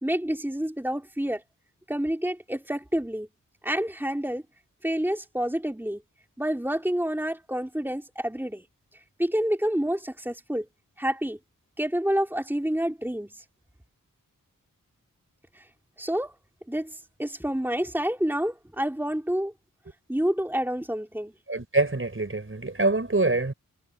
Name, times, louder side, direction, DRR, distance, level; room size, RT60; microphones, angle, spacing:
voice 1, 0.0-1.4 1.9-3.3 3.6-4.4 4.8-6.0 6.4-8.6 9.2-10.6 11.0-11.4 11.8-13.4 15.5-15.7 16.0-16.3 16.7-19.5 20.1-21.3, equal, 5° right, 2.9 m, -28 dB
voice 2, 21.5-23.5, right 2 dB, 40° right, 5.8 m, -25 dB
wide cardioid pair, 70°, 34 cm